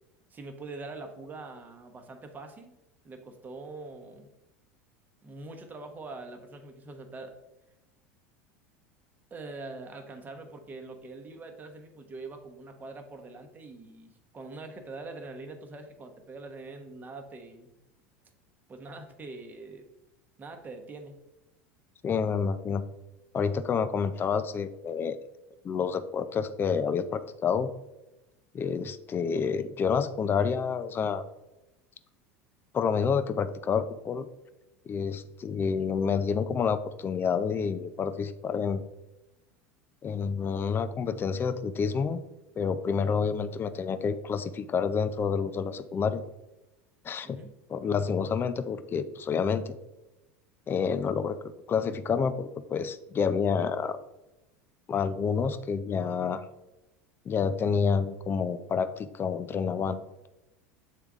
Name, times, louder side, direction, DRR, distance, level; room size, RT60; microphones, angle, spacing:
voice 1, 0.3-2.7 3.0-4.3 5.2-7.3 9.3-17.7 18.7-19.8 20.4-21.2 47.2-47.5, right 3 dB, 25° right, 5 dB, 1.0 m, -43 dB
voice 2, 22.0-22.8 23.3-25.2 25.6-27.7 28.5-31.3 32.7-34.3 34.9-38.8 40.0-42.2 42.6-46.2 47.0-47.4 47.7-49.7 50.7-51.4 51.7-54.0 54.9-56.5 57.3-60.0, left 6 dB, 30° left, 12 dB, 0.5 m, -28 dB
7.4 x 3.5 x 3.6 m, 0.97 s
hypercardioid pair, 85°, 7 cm